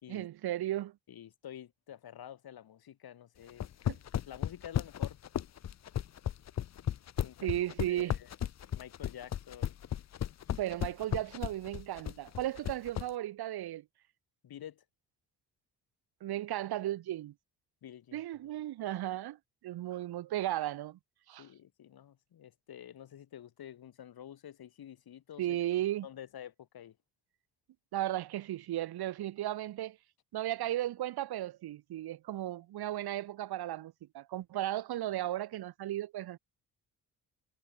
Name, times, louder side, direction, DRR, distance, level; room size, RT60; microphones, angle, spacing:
voice 1, 0.1-1.0 3.9-4.0 7.4-8.2 10.6-13.8 16.2-17.3 18.1-19.4 19.6-21.0 21.3-21.5 25.4-26.1 27.9-30.0 30.3-36.4, right 13 dB, 70° right, 1.5 m, -35 dB
voice 2, 1.1-3.6 4.3-5.2 7.2-7.6 7.9-8.3 8.7-9.8 14.4-14.8 17.8-18.2 21.4-25.6 26.0-27.0, left 10 dB, 65° left, 4.1 m, -49 dB
sound 1, 3.5-13.1, left 10 dB, 40° left, 0.7 m, -34 dB
supercardioid pair, 65°, 39 cm